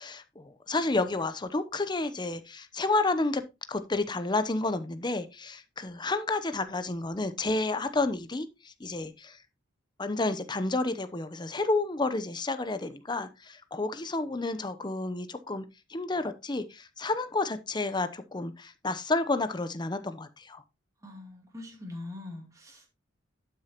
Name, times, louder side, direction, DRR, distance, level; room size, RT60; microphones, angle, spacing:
voice 1, 0.0-3.4 3.7-9.4 10.0-20.6, left 2 dB, 20° left, 0.8 m, -30 dB
voice 2, 21.0-22.9, left 2 dB, 15° right, 2.8 m, -42 dB
11.5 x 6.5 x 3.0 m
head